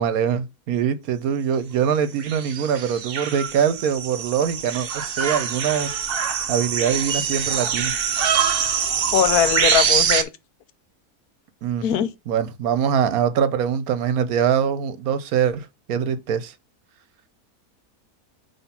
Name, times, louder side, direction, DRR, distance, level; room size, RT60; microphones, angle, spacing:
voice 1, 0.0-5.9 6.5-7.9 11.6-11.9 12.3-16.5, right 8 dB, 70° right, 1.2 m, -23 dB
sound 1, 2.2-10.2, right 7 dB, 50° right, 0.8 m, -24 dB
voice 2, 9.1-10.3 11.8-12.1, left 9 dB, 75° left, 1.2 m, -20 dB
5.9 x 3.4 x 5.6 m
omnidirectional pair, 1.6 m